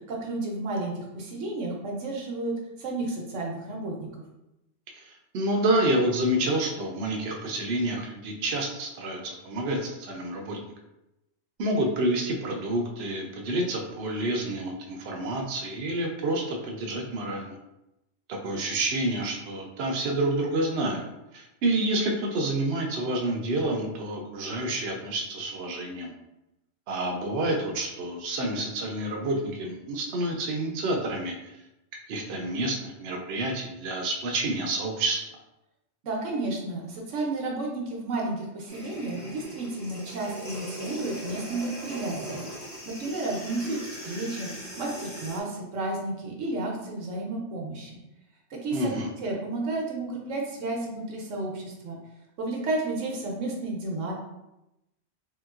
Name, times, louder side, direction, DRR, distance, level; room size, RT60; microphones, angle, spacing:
voice 1, 0.1-2.5 2.8-4.1 36.0-44.5 44.8-48.0 48.5-52.0 52.4-54.1, right 2 dB, 85° right, -1 dB, 1.1 m, -32 dB
voice 2, 4.9-10.6 11.6-17.6 18.3-21.0 21.3-26.1 26.9-31.6 32.1-35.4 48.7-49.1, right 1 dB, 65° right, 1 dB, 0.8 m, -28 dB
sound 1, 38.7-45.4, right 1 dB, 15° left, 0.8 m, -39 dB
3.1 x 2.9 x 2.3 m, 0.90 s
omnidirectional pair, 1.2 m